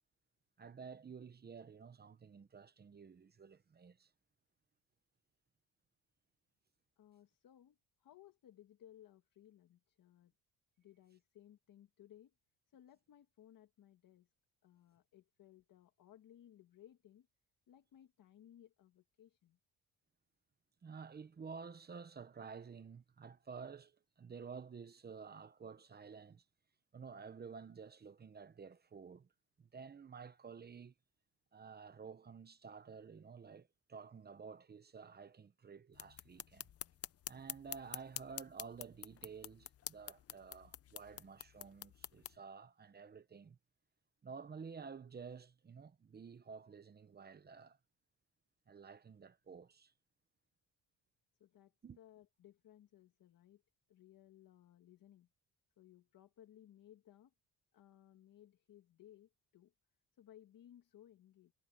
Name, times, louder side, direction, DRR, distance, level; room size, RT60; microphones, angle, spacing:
voice 1, 0.6-4.1 20.8-26.4 26.9-29.3 29.6-30.9 31.5-36.7 37.3-43.6 44.2-47.8 48.7-49.9 51.8-52.0, right 5 dB, 25° right, 0.9 m, -52 dB
voice 2, 7.0-10.3 10.8-12.3 12.7-14.3 14.6-17.3 17.7-19.6 51.4-53.6 53.9-55.3 55.8-57.3 57.7-59.7 60.1-61.5, left 11 dB, 60° left, 1.9 m, -62 dB
sound 1, 35.9-42.4, left 10 dB, 40° left, 0.6 m, -48 dB
cardioid pair, 140°, 37 cm